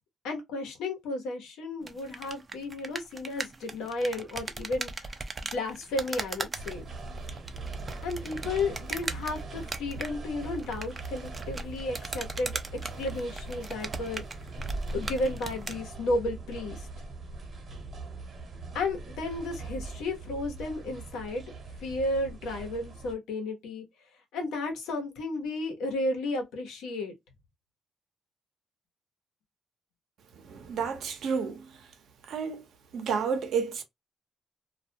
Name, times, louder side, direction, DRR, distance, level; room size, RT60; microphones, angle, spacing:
voice 1, 0.2-4.9 5.5-6.8 8.0-12.6 13.0-14.2 14.9-16.8 18.7-21.4 21.8-23.8 24.3-27.1, left 2 dB, 90° left, 0.9 m, -33 dB
sound 1, 1.8-15.8, right 3 dB, 30° right, 0.4 m, -39 dB
sound 2, 6.5-23.1, right 3 dB, 50° right, 1.0 m, -40 dB
voice 2, 30.4-31.8 32.3-32.6 32.9-33.8, right 6 dB, 70° right, 0.7 m, -31 dB
2.3 x 2.2 x 2.7 m
cardioid pair, 90°, 0 cm